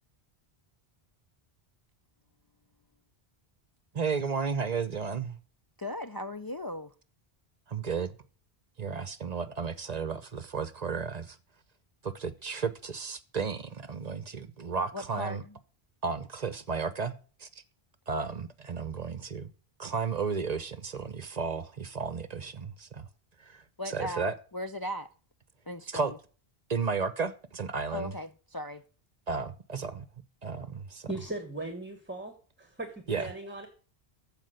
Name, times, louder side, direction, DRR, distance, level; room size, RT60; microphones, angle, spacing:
voice 1, 3.9-5.4 7.7-8.2 8.8-11.4 12.0-15.4 16.0-17.1 17.4-17.6 18.1-19.5 19.8-23.1 23.4-24.3 25.9-26.1 26.7-28.1 29.3-30.0 30.4-31.1 33.1-33.3, right 5 dB, 45° right, 0.9 m, -33 dB
voice 2, 5.8-6.9 14.9-15.5 23.8-25.1 25.7-26.2 27.9-28.8, left 1 dB, 30° left, 0.4 m, -38 dB
voice 3, 31.1-32.3 32.6-32.9 33.2-33.7, right 2 dB, 10° right, 1.4 m, -37 dB
14.5 x 5.0 x 7.9 m
omnidirectional pair, 1.0 m